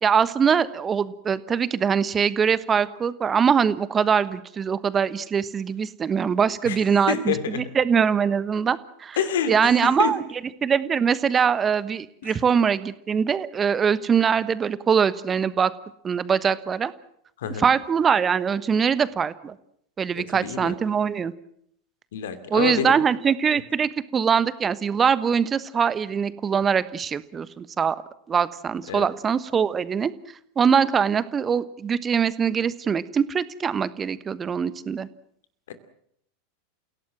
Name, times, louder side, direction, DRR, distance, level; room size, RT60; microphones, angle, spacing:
voice 1, 0.0-9.2 9.5-10.2 10.6-15.7 16.0-16.9 17.6-19.5 20.0-21.3 22.5-28.0 28.3-30.1 30.6-35.1, right 7 dB, 25° right, 16 dB, 1.2 m, -22 dB
voice 2, 7.1-7.7 9.2-10.2 12.2-12.4 17.4-17.7 20.1-20.7 22.1-23.0 28.9-29.1 35.7-35.8, left 7 dB, 65° left, 11 dB, 2.6 m, -28 dB
29.5 x 17.0 x 7.5 m, 0.71 s
figure-of-eight pair, 85°, 0 cm